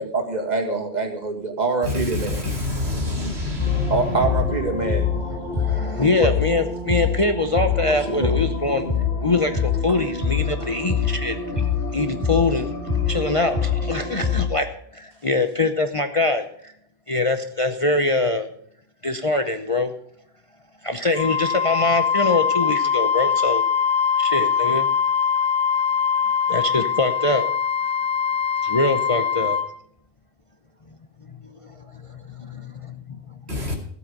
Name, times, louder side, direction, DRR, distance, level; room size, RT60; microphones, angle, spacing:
voice 1, 0.1-2.4 3.9-5.1 6.2-6.3 8.1-8.3, right 3 dB, 35° right, 2.0 m, -24 dB
voice 2, 1.8-5.9 33.5-33.8, left 3 dB, 60° right, 2.8 m, -28 dB
sound 1, 3.6-14.5, left 6 dB, 85° left, 3.5 m, -25 dB
voice 3, 5.0-8.8 9.2-11.6 11.9-12.7 13.1-14.7 14.9-16.7 17.1-18.5 19.0-19.9 20.8-23.6 24.2-24.9 26.5-27.5 28.6-29.6 30.9-31.0 31.5-33.4, left 2 dB, 30° left, 0.8 m, -24 dB
Wind instrument woodwind instrument, 21.1-29.7, left 7 dB, 65° left, 2.5 m, -22 dB
15.0 x 8.2 x 5.3 m
omnidirectional pair, 1.2 m